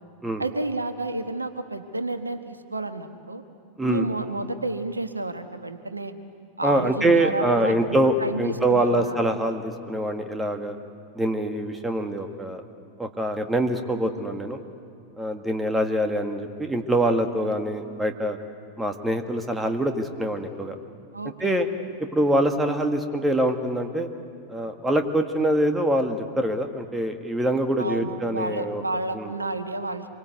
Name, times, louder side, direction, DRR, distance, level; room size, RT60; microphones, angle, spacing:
voice 1, 0.4-3.4 3.9-6.1 6.6-9.2 21.1-21.6 27.8-30.1, right 2 dB, 80° right, 9 dB, 1.2 m, -30 dB
voice 2, 3.8-4.1 6.6-10.8 11.2-12.6 13.0-14.6 15.2-18.4 18.8-20.8 21.4-21.7 22.1-24.1 24.5-28.8 29.1-29.3, right 1 dB, 10° right, 6 dB, 1.8 m, -24 dB
26.5 x 23.5 x 8.1 m, 2.4 s
figure-of-eight pair, 90°, 0 cm